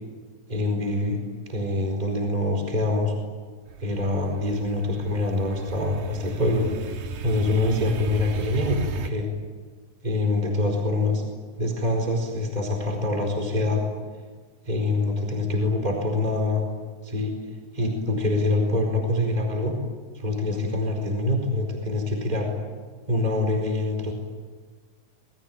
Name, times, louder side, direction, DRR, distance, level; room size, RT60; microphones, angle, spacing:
voice 1, 0.5-1.2 1.5-3.1 3.8-6.7 7.2-9.3 10.0-11.2 11.6-13.8 14.6-16.6 17.0-17.3 17.7-19.8 20.1-22.5 23.1-24.1, left 2 dB, 15° right, 2 dB, 4.5 m, -25 dB
sound 1, 3.7-9.1, right 4 dB, 80° right, 3.1 m, -35 dB
27.0 x 22.5 x 9.2 m, 1.5 s
omnidirectional pair, 3.4 m